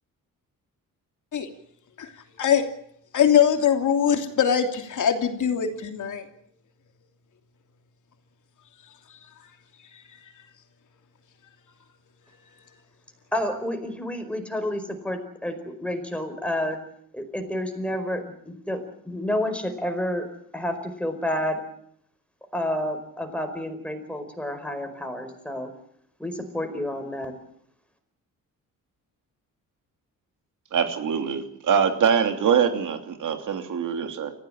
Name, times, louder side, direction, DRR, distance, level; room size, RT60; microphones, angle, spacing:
voice 1, 3.1-6.2, left 8 dB, 60° left, 5 dB, 3.1 m, -22 dB
voice 2, 13.3-16.8 17.1-20.3 20.5-21.6 22.5-25.7 26.2-27.3, left 1 dB, 5° left, 6 dB, 4.9 m, -30 dB
voice 3, 30.7-34.3, right 7 dB, 60° right, 6 dB, 3.0 m, -23 dB
28.5 x 15.5 x 8.9 m, 0.71 s
cardioid pair, 140°, 34 cm